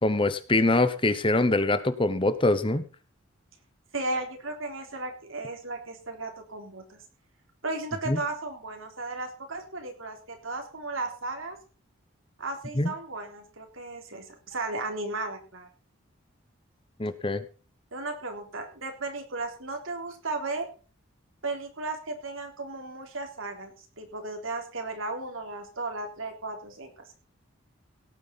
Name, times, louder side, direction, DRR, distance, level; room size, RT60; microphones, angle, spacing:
voice 1, 0.0-2.8 8.1-8.2 12.8-12.9 17.0-17.4, left 2 dB, 25° left, 12 dB, 0.9 m, -24 dB
voice 2, 3.9-7.0 7.6-11.6 12.4-15.7 17.9-20.7 21.4-27.0, right 2 dB, 75° right, 4 dB, 3.5 m, -35 dB
17.5 x 9.4 x 4.1 m, 0.38 s
head